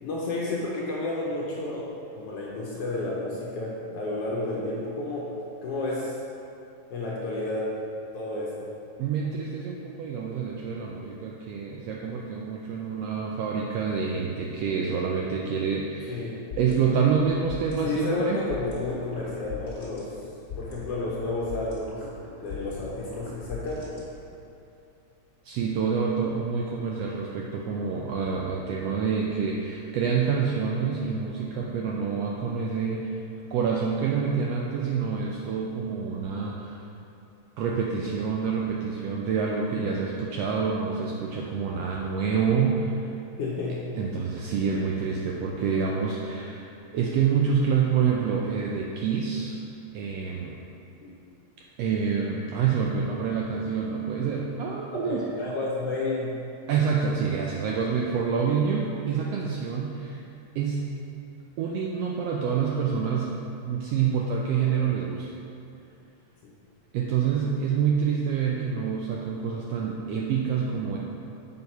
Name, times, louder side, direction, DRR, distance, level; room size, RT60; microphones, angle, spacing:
voice 1, 0.0-1.9 2.1-5.3 5.6-6.1 6.9-7.7 8.1-8.7 16.1-16.4 17.8-20.1 20.6-22.0 22.4-23.9 43.4-43.9 51.0-51.1 55.0-56.4 66.4-66.5, left 2 dB, 70° left, -5 dB, 1.5 m, -31 dB
voice 2, 9.0-16.3 16.5-18.4 25.4-33.2 33.5-36.9 37.6-43.0 44.0-46.7 46.9-49.6 49.9-50.6 51.8-55.2 56.7-60.2 60.5-60.9 61.6-65.4 66.9-71.0, right 6 dB, 80° right, -2 dB, 1.4 m, -27 dB
sound 1, 16.5-24.5, left 4 dB, 35° left, 1.8 m, -41 dB
6.7 x 4.5 x 5.3 m, 2.7 s
omnidirectional pair, 3.3 m